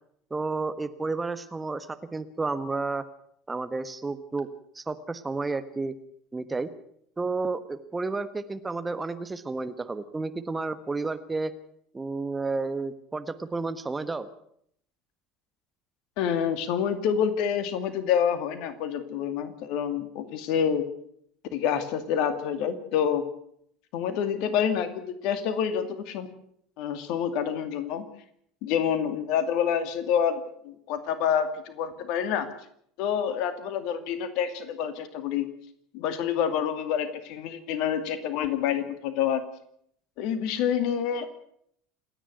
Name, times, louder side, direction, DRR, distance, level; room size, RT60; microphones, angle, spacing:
voice 1, 0.3-3.1 3.5-4.5 4.7-5.9 6.3-6.7 7.2-11.5 11.9-14.3, right 3 dB, 15° right, 11 dB, 1.3 m, -31 dB
voice 2, 16.2-20.8 21.5-23.3 23.9-26.3 26.8-28.1 28.6-32.5 33.0-35.5 35.9-39.4 40.2-41.3, left 8 dB, 55° left, 10 dB, 2.3 m, -27 dB
28.0 x 10.0 x 9.4 m, 0.70 s
figure-of-eight pair, 70°, 0 cm